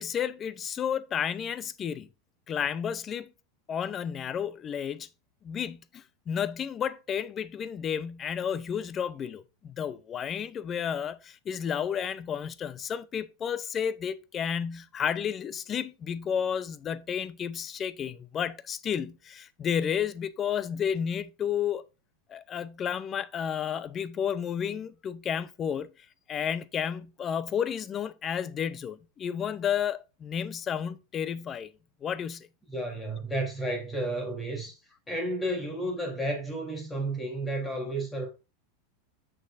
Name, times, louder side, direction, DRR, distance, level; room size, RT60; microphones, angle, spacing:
voice 1, 0.0-2.1 2.5-3.3 3.7-5.1 5.4-21.8 22.3-25.9 26.3-31.7 32.0-32.5, left 8 dB, 30° left, 0.6 m, -32 dB
voice 2, 32.7-34.8 35.1-38.3, right 1 dB, 10° left, 3.2 m, -32 dB
7.6 x 6.4 x 2.6 m
supercardioid pair, 125°, 0 cm